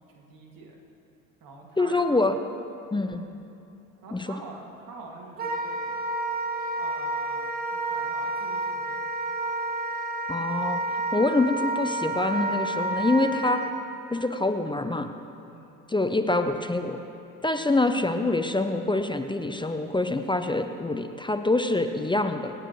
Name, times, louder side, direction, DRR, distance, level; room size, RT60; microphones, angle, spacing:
voice 1, 0.1-0.8 1.4-2.2 2.9-3.2 4.0-6.1 6.7-9.1 15.5-15.8 17.7-18.1, right 3 dB, 50° right, 0 dB, 2.4 m, -46 dB
voice 2, 1.8-2.4 2.9-3.2 4.1-4.3 10.3-10.8 11.1-13.6 14.1-15.1 15.9-17.0 17.4-22.5, left 2 dB, 10° left, 7 dB, 0.7 m, -25 dB
Wind instrument woodwind instrument, 5.4-13.7, right 2 dB, 20° right, 1.3 m, -30 dB
25.0 x 8.9 x 3.2 m, 2.7 s
hypercardioid pair, 60°, 43 cm